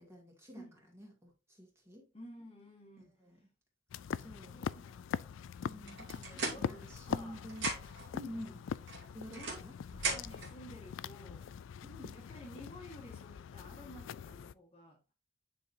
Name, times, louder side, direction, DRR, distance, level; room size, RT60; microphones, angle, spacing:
voice 1, 0.0-2.1 3.0-3.4 4.1-4.6 5.6-8.6 9.1-9.8 11.8-12.2, equal, 15° right, 2.3 m, -50 dB
voice 2, 2.1-3.2 4.4-5.4 6.1-7.4 8.3-8.6 9.3-9.6 10.1-11.5 12.1-15.0, equal, 30° left, 1.7 m, -53 dB
sound 1, 3.9-14.5, left 7 dB, 75° left, 0.3 m, -43 dB
sound 2, 5.9-7.2 7.5-8.1 8.9-10.5, right 3 dB, 70° right, 2.5 m, -39 dB
9.4 x 5.1 x 2.7 m
head